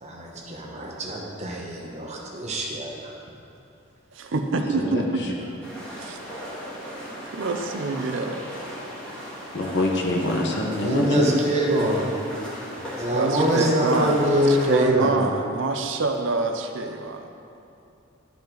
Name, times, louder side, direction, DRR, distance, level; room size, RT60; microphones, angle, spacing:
voice 1, 0.0-3.1 10.7-12.0 13.0-15.2, right 1 dB, 35° right, -2 dB, 1.1 m, -24 dB
voice 2, 4.1-5.2 5.7-6.2 7.2-8.6 13.1-14.1 14.5-17.3, right 3 dB, 65° right, 5 dB, 0.6 m, -27 dB
voice 3, 4.7-5.3 9.5-11.4, left 1 dB, 60° left, 0 dB, 1.1 m, -25 dB
sound 1, 5.6-14.8, equal, 5° left, 1.8 m, -36 dB
12.0 x 5.2 x 3.9 m, 2.7 s
head